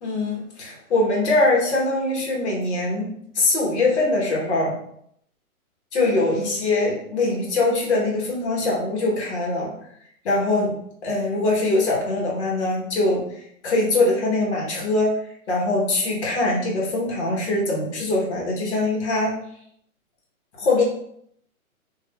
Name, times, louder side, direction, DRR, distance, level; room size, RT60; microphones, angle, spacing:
voice 1, 0.0-4.7 5.9-9.7 10.2-10.7 11.0-13.3 13.6-15.1 15.5-19.3 20.5-20.8, left 2 dB, 50° left, -2 dB, 1.3 m, -22 dB
2.6 x 2.6 x 3.5 m, 0.69 s
hypercardioid pair, 155°, 43 cm